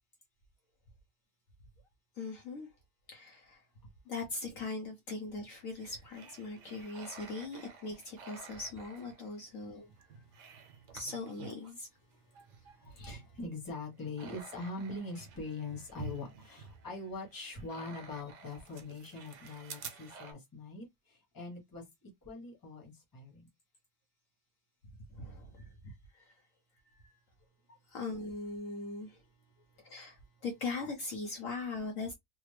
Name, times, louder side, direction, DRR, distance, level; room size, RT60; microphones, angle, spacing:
voice 1, 2.2-2.7 3.1-3.6 4.1-9.9 10.9-11.9 25.1-26.3 27.0-27.1 27.9-29.2 29.8-32.1, left 3 dB, 60° left, 1.1 m, -40 dB
sound 1, 5.6-11.7 12.1-20.3, right 5 dB, 80° right, 1.4 m, -51 dB
voice 2, 12.8-23.5, left 3 dB, 15° left, 1.0 m, -43 dB
3.3 x 2.3 x 3.2 m
omnidirectional pair, 1.8 m